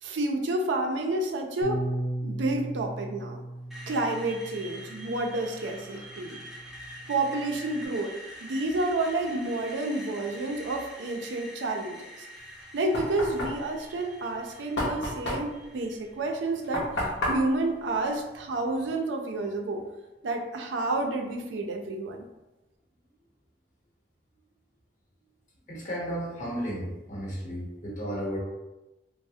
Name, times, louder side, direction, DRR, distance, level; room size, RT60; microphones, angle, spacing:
voice 1, 0.0-1.8 2.2-3.4 3.9-6.4 7.1-8.1 8.4-12.3 12.7-16.9 17.3-19.8 20.2-22.3, right 2 dB, 85° right, 3 dB, 0.4 m, -30 dB
Bass guitar, 1.6-7.9, right 1 dB, 55° right, 0.8 m, -37 dB
Screech, 3.7-17.7, equal, ahead, 0.5 m, -46 dB
Knock, 12.4-18.9, left 1 dB, 90° left, 0.7 m, -34 dB
voice 2, 25.7-28.4, equal, 45° left, -4 dB, 0.9 m, -33 dB
3.1 x 2.1 x 2.6 m, 1.0 s
head